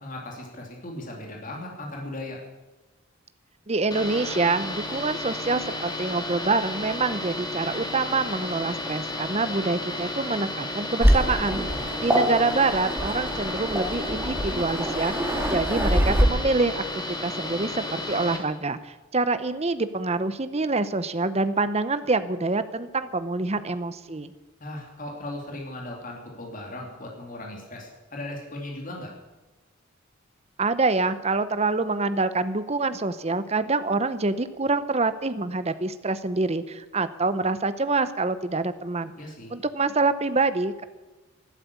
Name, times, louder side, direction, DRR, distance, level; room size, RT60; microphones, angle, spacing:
voice 1, 0.0-2.4 11.7-12.2 24.6-29.1 39.1-39.5, left 1 dB, 40° left, 0 dB, 2.8 m, -37 dB
voice 2, 3.7-24.3 30.6-39.1 39.5-40.8, right 3 dB, 30° right, 13 dB, 0.8 m, -26 dB
sound 1, 3.9-18.4, left 1 dB, 20° left, 2.3 m, -33 dB
Waves surf, 11.0-16.2, equal, 10° right, 2.1 m, -25 dB
13.0 x 12.0 x 8.4 m, 1.2 s
head